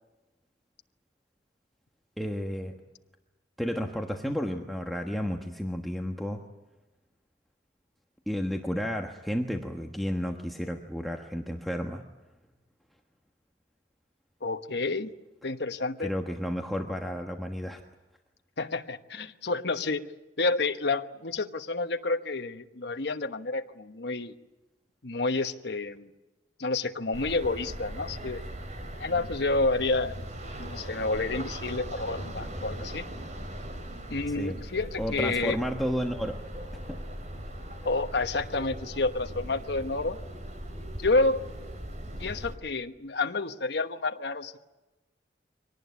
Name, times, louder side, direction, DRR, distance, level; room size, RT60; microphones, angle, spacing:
voice 1, 2.2-2.7 3.6-6.4 8.3-12.0 16.0-17.8 34.3-34.6 35.0-36.4 36.9-37.1, equal, ahead, 1 dB, 1.3 m, -32 dB
voice 2, 14.4-15.1 15.4-16.1 18.6-20.0 20.4-24.3 25.0-26.1 26.6-28.4 29.0-30.2 30.6-33.0 34.1-35.6 37.8-40.2 41.0-41.4 42.2-44.6, left 3 dB, 65° left, 7 dB, 1.2 m, -29 dB
sound 1, 27.1-42.6, right 1 dB, 40° right, 3.4 m, -39 dB
24.0 x 18.5 x 9.6 m, 1.1 s
head